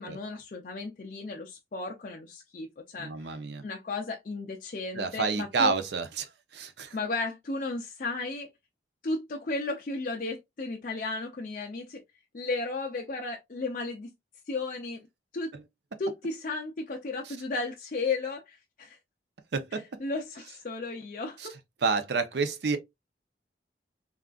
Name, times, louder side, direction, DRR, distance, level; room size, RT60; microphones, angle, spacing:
voice 1, 0.0-3.4 3.6-5.7 6.9-8.5 9.0-12.0 12.3-14.1 14.5-15.0 15.3-15.6 16.0-19.0 19.7-21.5, left 3 dB, 50° left, 0.4 m, -34 dB
voice 2, 3.0-3.6 5.0-6.3 6.5-6.9 19.5-19.8 21.8-22.8, right 4 dB, 75° right, 0.5 m, -28 dB
3.5 x 2.3 x 2.3 m
head